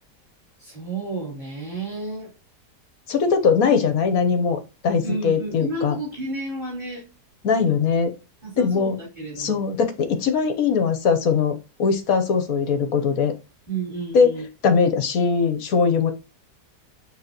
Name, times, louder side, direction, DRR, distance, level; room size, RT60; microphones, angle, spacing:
voice 1, 0.6-2.3 5.0-7.0 8.4-9.6 13.7-14.4, right 2 dB, 25° right, -7 dB, 4.1 m, -31 dB
voice 2, 3.1-6.0 7.4-8.1 8.6-8.9 9.4-13.3 14.1-14.3 14.6-16.1, left 5 dB, 60° left, 7 dB, 1.3 m, -21 dB
9.2 x 3.7 x 2.9 m, 0.29 s
omnidirectional pair, 1.9 m